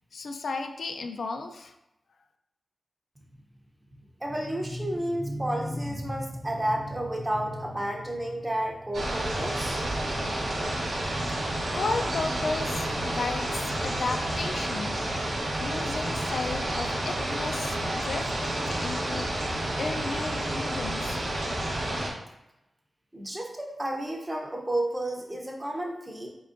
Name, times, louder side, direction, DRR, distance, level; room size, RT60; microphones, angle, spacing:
voice 1, 0.1-1.7 11.7-15.3 15.6-21.2, left 4 dB, 75° left, 5 dB, 0.4 m, -34 dB
voice 2, 4.2-9.8 23.1-26.3, right 1 dB, 15° right, 0 dB, 0.6 m, -31 dB
sound 1, 8.9-22.1, right 1 dB, 65° right, 0.9 m, -30 dB
4.4 x 3.7 x 2.5 m, 0.91 s
wide cardioid pair, 165°, 0 cm